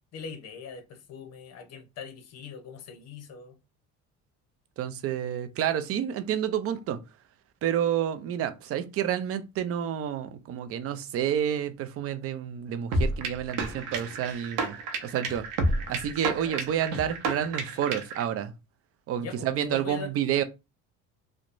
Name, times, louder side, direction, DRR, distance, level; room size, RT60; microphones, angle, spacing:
voice 1, 0.1-3.6 16.4-16.6 19.2-20.1, left 5 dB, 50° left, 0.8 m, -41 dB
voice 2, 4.8-7.0 7.6-14.8 15.0-15.4 15.9-18.5 19.1-20.4, right 9 dB, 45° right, 0.5 m, -29 dB
sound 1, 12.9-18.2, right 2 dB, 85° right, 0.7 m, -30 dB
2.9 x 2.1 x 2.5 m
cardioid pair, 115°, 32 cm